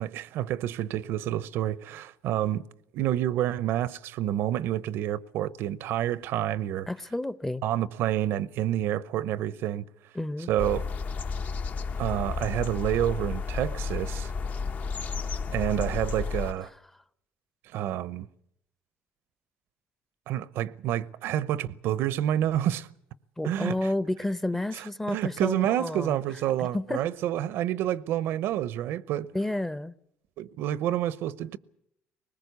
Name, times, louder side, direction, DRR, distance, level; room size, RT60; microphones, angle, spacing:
voice 1, 0.0-2.6 2.9-6.9 7.6-9.8 10.5-10.8 12.0-14.3 15.5-16.7 17.7-18.3 20.3-22.9 23.4-23.9 24.7-29.3 30.4-31.6, right 12 dB, 75° right, 0.8 m, -28 dB
voice 2, 6.9-7.6 10.1-10.5 23.4-26.2 26.6-27.0 29.3-29.9, left 1 dB, 10° left, 0.7 m, -30 dB
sound 1, 10.6-16.5, left 4 dB, 40° left, 0.9 m, -32 dB
20.5 x 20.0 x 8.2 m
cardioid pair, 100°, 4 cm